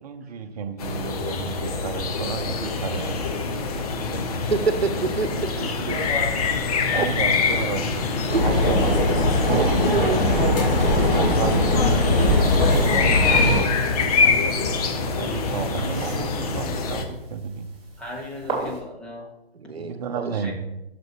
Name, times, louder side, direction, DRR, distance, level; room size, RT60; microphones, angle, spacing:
voice 1, 0.0-4.4 6.9-8.1 8.4-8.9 9.5-10.8 11.1-12.7 14.2-14.6 15.1-17.7 19.7-20.5, right 6 dB, 40° right, 6 dB, 0.8 m, -32 dB
sound 1, 0.8-17.0, left 4 dB, 35° left, 1.0 m, -25 dB
voice 2, 4.5-5.9 6.9-7.1 8.3-8.5 9.4-11.1 14.5-14.7 19.5-20.5, right 4 dB, 80° right, 11 dB, 0.8 m, -28 dB
voice 3, 5.7-6.3 18.0-19.3 20.4-20.5, left 1 dB, 5° left, -5 dB, 0.5 m, -35 dB
sound 2, 8.3-13.6, left 1 dB, 60° left, 2.5 m, -20 dB
sound 3, 9.7-18.8, right 1 dB, 15° right, 2.1 m, -36 dB
9.1 x 6.8 x 3.2 m, 0.94 s
figure-of-eight pair, 130°, 31 cm